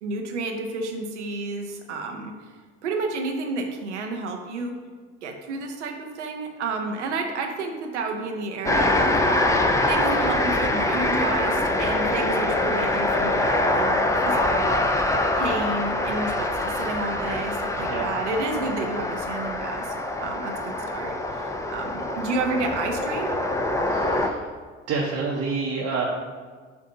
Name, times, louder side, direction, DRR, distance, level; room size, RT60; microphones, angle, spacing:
voice 1, 0.0-2.4 2.8-4.8 5.2-9.2 9.9-14.8 15.3-19.9 20.2-23.3, right 3 dB, 80° right, 3 dB, 0.7 m, -31 dB
sound 1, 8.6-24.3, left 1 dB, 10° left, 0.6 m, -24 dB
voice 2, 23.9-24.4 24.9-26.0, right 4 dB, 45° right, -3 dB, 0.9 m, -28 dB
6.9 x 2.7 x 5.1 m, 1.5 s
figure-of-eight pair, 55°, 34 cm